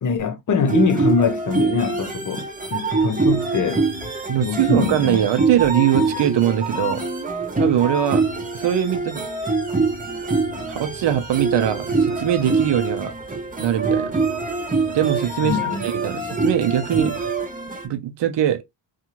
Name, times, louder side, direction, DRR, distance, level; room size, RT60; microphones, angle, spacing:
voice 1, 0.0-3.8 4.4-5.2 15.4-15.9, left 5 dB, 40° left, 0.7 m, -23 dB
sound 1, 0.7-17.9, right 3 dB, 20° right, 0.7 m, -24 dB
voice 2, 4.3-7.0 7.6-8.2 8.5-9.2 10.7-13.1 13.6-14.1 14.9-17.3 17.8-18.6, right 10 dB, 65° right, 0.7 m, -21 dB
2.7 x 2.4 x 2.9 m
wide cardioid pair, 140°, 47 cm